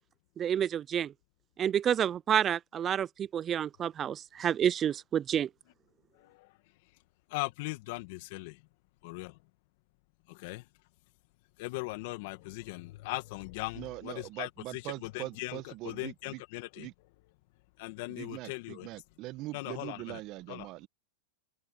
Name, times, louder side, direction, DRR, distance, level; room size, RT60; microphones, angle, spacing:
voice 1, 0.4-1.1 1.6-5.5, right 9 dB, 25° right, 0.4 m, -29 dB
voice 2, 6.1-6.6 7.3-8.6 9.0-9.4 10.3-10.7 11.6-16.9 17.8-18.9 19.5-20.2 20.5-20.7, left 22 dB, 55° left, 2.0 m, -39 dB
voice 3, 13.7-16.4 16.8-16.9 18.1-20.9, right 18 dB, 45° right, 1.5 m, -42 dB
hypercardioid pair, 125°, 0 cm